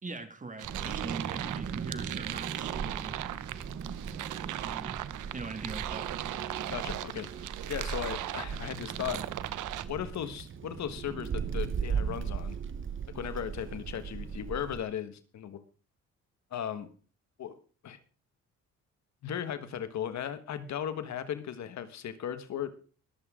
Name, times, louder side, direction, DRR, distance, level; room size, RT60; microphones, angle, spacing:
voice 1, 0.0-3.2 4.6-5.0 5.3-6.1, right 3 dB, 25° right, 8 dB, 2.1 m, -42 dB
Wind, 0.6-14.8, right 6 dB, 40° right, 1.2 m, -38 dB
sound 1, 0.6-9.8, right 14 dB, 80° right, 0.9 m, -38 dB
voice 2, 6.7-7.3 7.7-9.3 9.9-12.6 13.1-15.6 16.5-16.9 17.4-17.5 17.8-18.0 19.2-22.8, left 9 dB, 65° left, 11 dB, 1.5 m, -36 dB
21.5 x 8.0 x 3.8 m, 0.39 s
cardioid pair, 90°, 30 cm